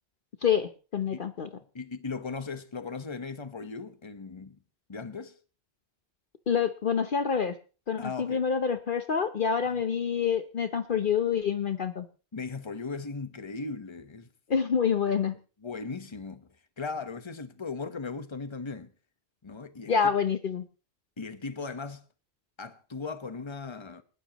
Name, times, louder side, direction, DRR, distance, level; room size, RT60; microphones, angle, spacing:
voice 1, 0.4-1.5 6.5-7.5 7.9-12.1 14.5-15.4 19.9-20.7, left 7 dB, 55° left, 1.0 m, -27 dB
voice 2, 1.7-4.6 4.9-5.4 8.0-8.4 12.3-14.3 15.6-16.5 16.8-18.9 19.4-19.9 21.2-22.0 22.6-24.0, left 4 dB, 25° left, 1.1 m, -37 dB
28.5 x 12.0 x 3.0 m
omnidirectional pair, 1.1 m